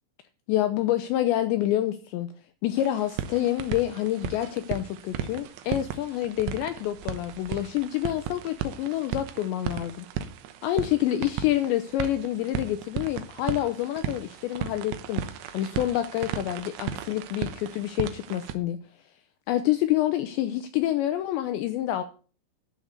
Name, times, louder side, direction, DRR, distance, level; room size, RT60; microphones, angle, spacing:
voice 1, 0.5-2.3 2.6-10.1 10.6-18.8 19.5-22.0, left 13 dB, 80° left, 9 dB, 2.6 m, -27 dB
sound 1, 2.8-18.6, right 9 dB, 75° right, 2.6 m, -36 dB
13.5 x 5.8 x 8.0 m, 0.39 s
omnidirectional pair, 5.9 m